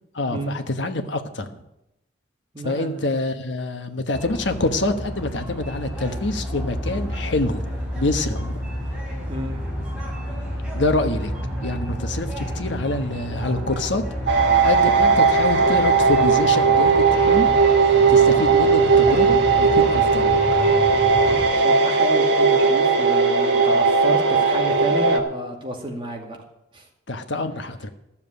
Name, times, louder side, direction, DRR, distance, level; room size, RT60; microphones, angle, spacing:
voice 1, 0.1-1.5 2.6-7.6 8.0-8.6 10.7-11.3 11.6-14.0 14.6-17.5 18.1-20.6 27.1-27.9, left 2 dB, 70° left, 7 dB, 1.2 m, -26 dB
voice 2, 2.5-3.4 9.3-9.6 21.2-26.4 26.7-26.8, right 1 dB, 25° right, 1 dB, 2.2 m, -31 dB
sound 1, 4.1-21.5, equal, 5° right, 4.1 m, -30 dB
sound 2, 14.3-25.2, right 5 dB, 70° right, 1.4 m, -17 dB
13.5 x 7.2 x 8.2 m, 0.87 s
head